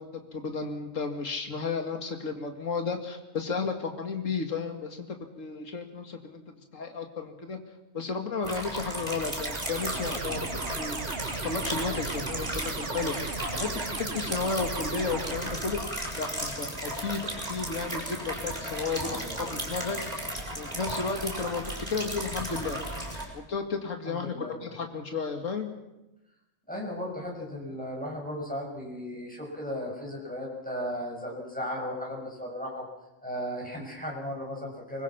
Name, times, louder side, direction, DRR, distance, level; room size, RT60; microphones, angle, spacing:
voice 1, 0.0-5.1 5.4-6.4 6.7-7.6 7.9-11.0 11.4-13.1 13.5-15.8 16.2-19.2 19.5-20.0 20.6-22.8 23.3-25.7, left 4 dB, 85° left, 5 dB, 2.4 m, -33 dB
sound 1, 8.4-23.2, right 1 dB, 30° right, 5.8 m, -35 dB
sound 2, 9.2-16.0, right 4 dB, 50° right, 1.5 m, -37 dB
voice 2, 19.0-19.5 24.0-24.5 26.7-32.8 33.2-35.0, equal, 5° left, -2 dB, 6.3 m, -36 dB
25.0 x 22.0 x 5.9 m, 0.97 s
omnidirectional pair, 1.3 m